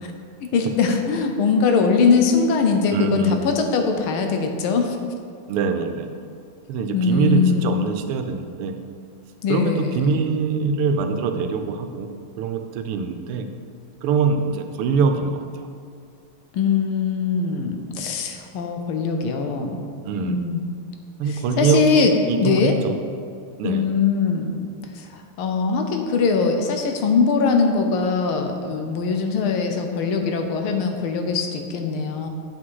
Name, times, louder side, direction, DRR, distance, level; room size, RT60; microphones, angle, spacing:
voice 1, 0.5-5.0 6.9-7.7 9.4-10.2 16.5-19.8 20.2-20.6 21.6-22.1 22.4-22.7 23.6-24.6 24.9-32.3, left 5 dB, 75° left, 4 dB, 1.6 m, -21 dB
voice 2, 2.9-3.4 5.5-6.1 6.7-8.8 9.5-12.1 12.4-13.5 14.0-15.7 20.0-20.4 21.2-23.0 23.6-23.9, right 5 dB, 90° right, 7 dB, 1.6 m, -23 dB
7.8 x 6.0 x 4.7 m, 2.3 s
omnidirectional pair, 2.4 m